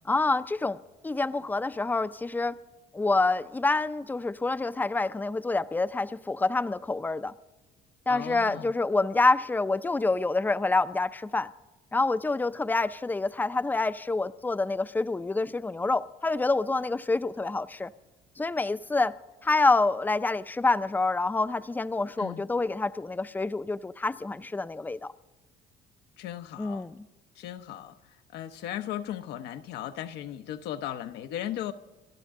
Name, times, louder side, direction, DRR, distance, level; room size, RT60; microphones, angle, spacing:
voice 1, 0.1-2.6 2.9-7.3 8.1-11.5 11.9-17.9 18.4-19.2 19.4-25.1 26.6-27.1, left 3 dB, 10° left, 0.5 m, -27 dB
voice 2, 8.1-8.7 22.2-22.4 26.2-26.8 27.4-27.9 28.3-31.7, left 11 dB, 85° left, 0.9 m, -36 dB
29.5 x 12.5 x 3.7 m
cardioid pair, 110°, 17 cm